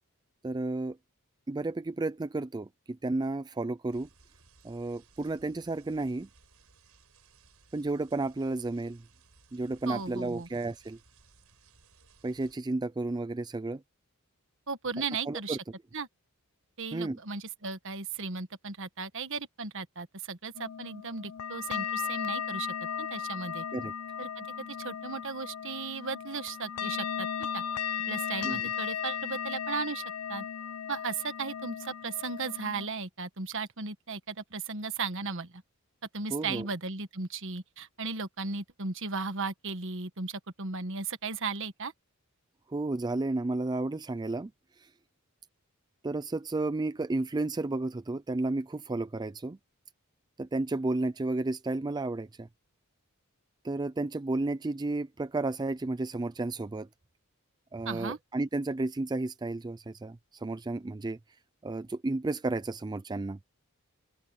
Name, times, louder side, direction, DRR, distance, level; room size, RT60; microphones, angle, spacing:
voice 1, 0.4-1.0 1.5-4.1 4.6-6.3 7.7-9.0 9.5-11.0 12.2-13.8 15.0-15.6 16.9-17.2 23.7-23.9 28.4-28.6 36.3-36.7 42.7-44.5 44.8-44.9 46.0-49.6 50.4-52.5 53.6-56.9 57.7-61.2 61.6-63.4, right 2 dB, 20° right, 0.4 m, -32 dB
sound 1, 3.9-12.6, right 4 dB, 85° right, 6.1 m, -61 dB
voice 2, 9.9-10.5 14.7-15.6 15.9-16.1 16.8-23.6 24.2-27.6 28.1-30.0 30.3-30.4 30.9-35.6 36.1-41.9 57.8-58.2, right 4 dB, 60° right, 1.5 m, -36 dB
sound 2, 20.5-32.9, left 8 dB, 85° left, 0.6 m, -36 dB
open air
head